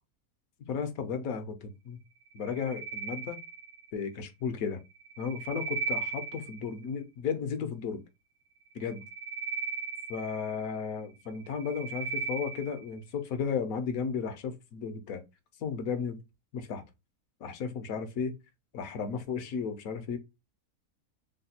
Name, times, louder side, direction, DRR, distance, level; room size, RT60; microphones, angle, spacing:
voice 1, 0.7-2.0 2.3-3.4 3.9-4.8 5.2-8.0 8.7-9.0 10.1-15.2 15.6-16.2 16.5-16.8 17.4-18.4 18.7-20.2, left 6 dB, 70° left, 1.1 m, -34 dB
sound 1, 2.3-4.0 5.0-6.8 8.8-10.9 11.4-12.9, right 5 dB, 80° right, 1.1 m, -37 dB
3.3 x 2.2 x 4.1 m
omnidirectional pair, 1.6 m